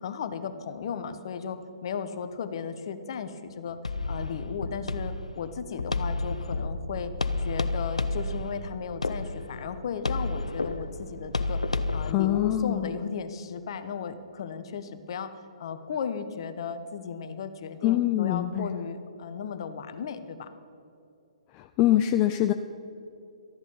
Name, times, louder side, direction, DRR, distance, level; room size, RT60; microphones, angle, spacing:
voice 1, 0.0-3.8 4.1-7.1 7.4-11.6 11.9-15.3 15.6-20.5, left 6 dB, 45° left, 10 dB, 0.9 m, -35 dB
sound 1, 3.8-12.1, left 3 dB, 75° left, 0.6 m, -31 dB
voice 2, 12.1-12.9 17.8-18.8 21.5-22.5, left 13 dB, 25° left, 7 dB, 0.4 m, -24 dB
14.0 x 10.5 x 5.5 m, 2.7 s
figure-of-eight pair, 125°, 4 cm